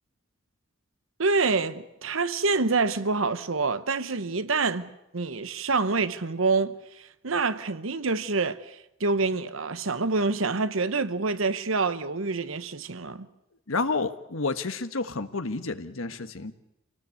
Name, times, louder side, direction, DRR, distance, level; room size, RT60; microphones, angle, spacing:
voice 1, 1.2-13.3, right 4 dB, 85° right, 1.1 m, -27 dB
voice 2, 13.7-16.5, left 3 dB, 90° left, 1.4 m, -30 dB
26.5 x 18.5 x 8.4 m
head